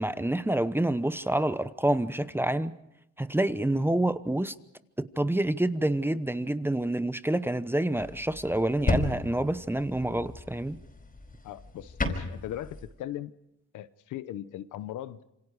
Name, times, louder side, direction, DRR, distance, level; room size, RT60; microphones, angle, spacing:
voice 1, 0.0-2.7 3.2-4.5 5.0-10.8, right 1 dB, 5° right, 14 dB, 0.9 m, -27 dB
sound 1, 8.0-12.9, left 2 dB, 30° left, 4.7 m, -34 dB
voice 2, 11.4-13.3 13.7-15.3, left 12 dB, 85° left, 14 dB, 1.0 m, -39 dB
27.5 x 25.5 x 4.9 m, 0.85 s
cardioid pair, 90°, 30 cm